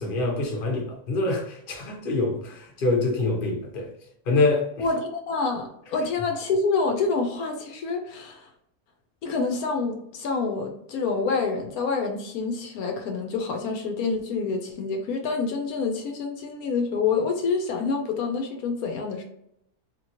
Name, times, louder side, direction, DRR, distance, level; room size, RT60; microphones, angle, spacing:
voice 1, 0.0-3.9 4.3-4.9, left 2 dB, 45° left, 0.9 m, -25 dB
voice 2, 4.8-8.5 9.2-19.2, left 4 dB, 80° left, 1.1 m, -27 dB
2.9 x 2.8 x 2.7 m
omnidirectional pair, 1.5 m